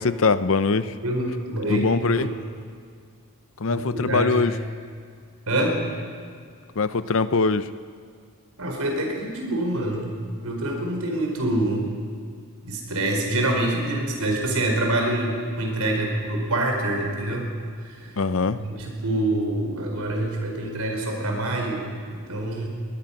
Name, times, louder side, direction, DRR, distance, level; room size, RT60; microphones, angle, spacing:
voice 1, 0.0-0.9 1.7-2.3 3.6-4.5 6.8-7.7 18.2-18.6, left 4 dB, 60° left, 13 dB, 0.7 m, -22 dB
voice 2, 1.0-2.3 3.7-4.4 5.5-5.8 8.6-10.1 10.4-11.9 12.6-17.5 17.8-18.1 18.6-22.7, right 1 dB, 75° right, 1 dB, 4.6 m, -26 dB
22.5 x 19.5 x 5.9 m, 2.1 s
head